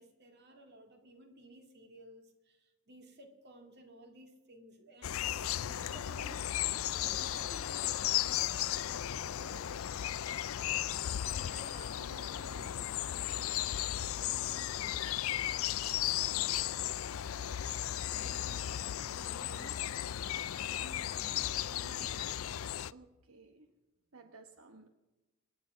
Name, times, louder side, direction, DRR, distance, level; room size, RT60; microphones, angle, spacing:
voice 1, 0.0-6.5 7.0-9.9 10.9-15.1 18.0-20.2 20.5-22.5, right 1 dB, 55° right, 5 dB, 2.3 m, -55 dB
sound 1, 5.0-22.9, left 12 dB, 80° left, 0.4 m, -35 dB
voice 2, 22.9-23.7 24.1-24.9, right 3 dB, 80° right, 7 dB, 1.2 m, -55 dB
25.0 x 9.9 x 5.7 m, 1.1 s
head